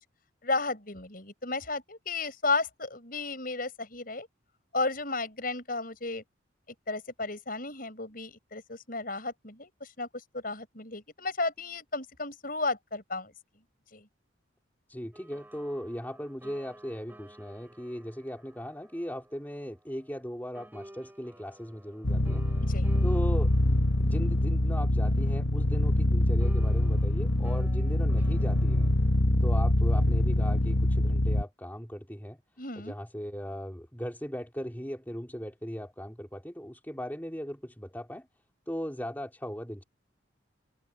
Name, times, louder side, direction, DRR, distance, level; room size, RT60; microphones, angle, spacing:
voice 1, 0.4-4.3 4.7-6.2 6.9-10.1 10.3-13.3 13.9-14.1 22.6-22.9 32.6-33.0, left 3 dB, 45° left, 7.2 m, -33 dB
voice 2, 14.9-22.4 23.0-23.5 24.0-28.9 29.4-32.4 32.8-38.3 38.7-39.8, equal, 10° left, 3.0 m, -38 dB
sound 1, 15.1-20.3 20.5-26.0 26.4-28.9, right 1 dB, 10° right, 6.6 m, -53 dB
sound 2, 22.0-31.4, left 1 dB, 65° left, 1.6 m, -25 dB
head